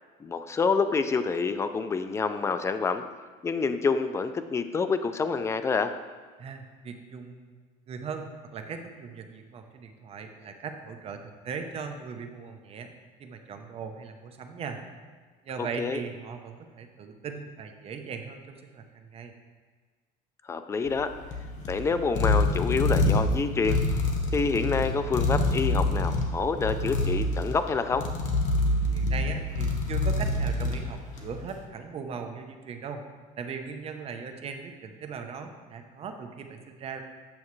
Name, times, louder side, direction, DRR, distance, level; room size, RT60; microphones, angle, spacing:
voice 1, 0.2-3.0 3.4-5.9 15.6-16.0 20.4-21.1 21.7-24.1 24.3-28.0, left 4 dB, 15° left, 10 dB, 0.4 m, -27 dB
voice 2, 6.4-7.5 7.9-12.9 13.2-14.8 15.4-19.3 28.9-33.0 33.4-37.0, right 5 dB, 35° right, 5 dB, 0.8 m, -39 dB
sound 1, 20.9-31.4, left 2 dB, 45° left, 1.1 m, -27 dB
8.7 x 6.9 x 3.2 m, 1.5 s
cardioid pair, 135°, 17 cm